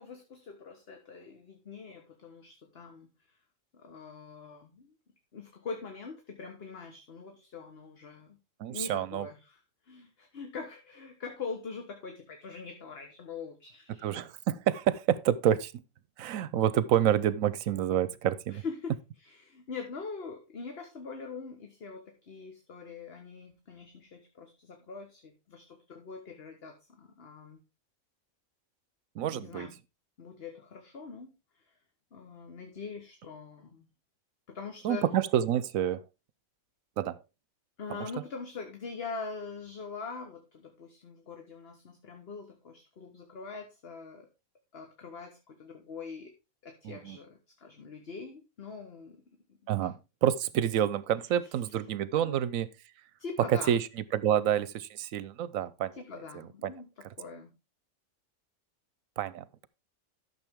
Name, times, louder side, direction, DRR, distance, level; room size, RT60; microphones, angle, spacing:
voice 1, 0.0-3.1 3.7-4.9 5.3-8.4 8.7-14.2 18.5-27.6 29.3-29.7 30.2-31.3 32.1-33.8 34.5-35.0 37.8-44.3 44.7-46.3 46.6-49.2 49.8-50.0 51.2-51.5 52.2-52.4 53.2-53.7 55.9-57.5, left 4 dB, 50° left, 1.3 m, -43 dB
voice 2, 8.6-9.3 14.0-15.7 16.2-18.6 29.2-29.7 34.8-36.0 37.0-37.2 37.9-38.0 46.8-47.2 49.7-52.7 53.5-55.9 56.6-56.7 59.2-59.7, right 10 dB, 75° right, 1.1 m, -28 dB
12.0 x 6.8 x 3.5 m
omnidirectional pair, 1.4 m